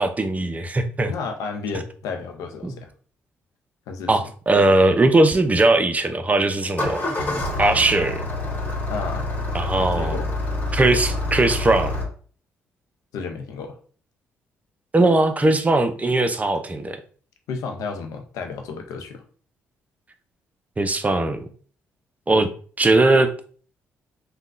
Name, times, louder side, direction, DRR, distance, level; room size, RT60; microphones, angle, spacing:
voice 1, 0.0-1.1 2.6-2.7 4.1-7.0 7.6-8.3 9.5-10.2 10.7-12.0 14.9-17.0 20.8-21.5 22.3-22.5 22.8-23.3, right 2 dB, 25° right, 8 dB, 0.5 m, -19 dB
voice 2, 1.1-2.9 3.9-4.2 8.9-9.3 9.8-10.3 13.1-13.8 17.5-19.2, left 5 dB, 75° left, 5 dB, 0.5 m, -32 dB
Engine starting, 6.6-12.0, left 2 dB, 35° left, 1.4 m, -27 dB
3.5 x 2.2 x 2.4 m, 0.44 s
supercardioid pair, 55°, 6 cm